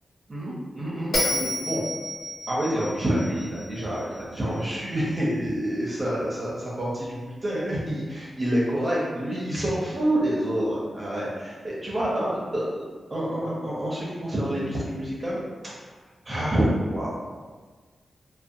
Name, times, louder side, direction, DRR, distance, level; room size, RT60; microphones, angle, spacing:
voice 1, 0.3-1.8 2.5-12.8 13.1-15.4 15.6-15.9 16.3-17.2, right 1 dB, 25° right, -6 dB, 0.5 m, -27 dB
Bell, 1.1-4.4, left 1 dB, 90° left, 0.6 m, -30 dB
2.4 x 2.1 x 2.6 m, 1.4 s
wide cardioid pair, 125°, 0 cm